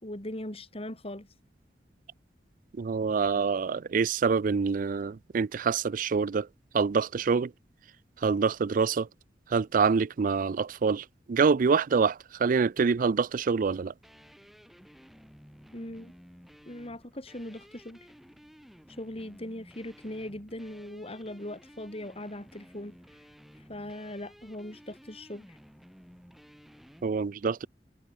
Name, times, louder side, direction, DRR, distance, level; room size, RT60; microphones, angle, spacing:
voice 1, 0.0-1.3 15.7-16.1 16.7-18.0 19.0-23.0 23.7-25.6, left 1 dB, 35° left, 4.0 m, -40 dB
voice 2, 2.8-6.4 6.7-7.5 8.2-9.0 9.5-11.0 11.3-12.1 12.4-13.9 27.0-27.7, right 5 dB, 50° right, 0.4 m, -26 dB
sound 1, 14.0-27.1, equal, ahead, 4.6 m, -54 dB
head